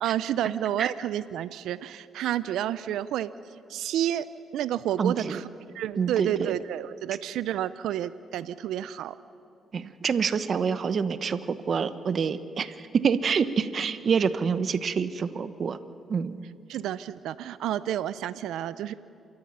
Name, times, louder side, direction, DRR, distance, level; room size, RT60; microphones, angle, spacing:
voice 1, 0.0-3.3 3.7-4.3 4.5-5.5 5.7-9.2 16.7-18.9, right 11 dB, 85° right, 15 dB, 0.5 m, -30 dB
voice 2, 5.0-5.4 6.0-6.5 9.7-15.8 16.1-16.4, right 6 dB, 50° right, 12 dB, 1.0 m, -27 dB
27.5 x 13.5 x 9.9 m, 2.6 s
cardioid pair, 90°, 0 cm